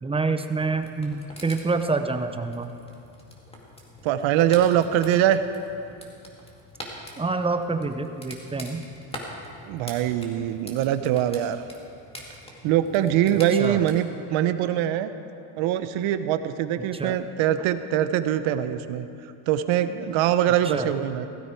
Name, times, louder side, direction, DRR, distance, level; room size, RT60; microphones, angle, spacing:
voice 1, 0.0-2.7 7.2-8.8 13.6-13.8 16.9-17.1 20.6-20.9, right 3 dB, 10° right, 8 dB, 0.6 m, -27 dB
sound 1, 0.7-13.9, equal, 10° left, 2.1 m, -44 dB
voice 2, 4.0-5.4 9.6-11.6 12.6-15.1 15.6-19.1 19.5-21.3, right 11 dB, 75° right, 11 dB, 0.9 m, -23 dB
16.5 x 14.5 x 4.6 m, 2.6 s
cardioid pair, 130°, 48 cm